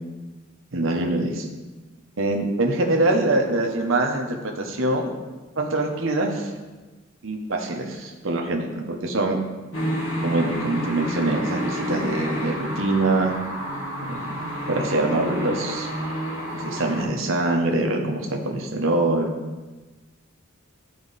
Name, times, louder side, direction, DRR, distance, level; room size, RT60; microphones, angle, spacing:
voice 1, 0.7-1.5 2.2-5.1 5.6-6.5 7.2-9.4 10.2-13.3 14.1-15.9 16.5-19.3, right 2 dB, 65° right, 2 dB, 1.0 m, -24 dB
sound 1, 9.7-17.0, equal, 70° left, 2.1 m, -29 dB
12.5 x 4.3 x 4.0 m, 1.2 s
head